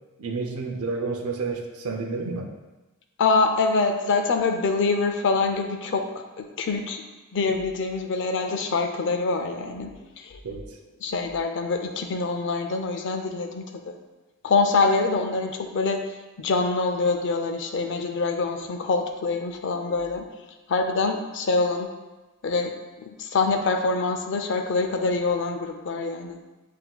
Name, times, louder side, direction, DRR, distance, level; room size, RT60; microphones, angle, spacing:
voice 1, 0.2-2.5 10.4-10.6, right 4 dB, 80° right, 3 dB, 0.6 m, -30 dB
voice 2, 3.2-6.0 6.4-7.0 7.3-9.9 10.2-10.4 11.0-14.0 14.4-16.0 16.4-20.2 20.7-21.9 22.4-22.7 23.2-26.4, left 3 dB, 60° left, 5 dB, 0.5 m, -25 dB
7.5 x 2.7 x 2.2 m, 1.1 s
head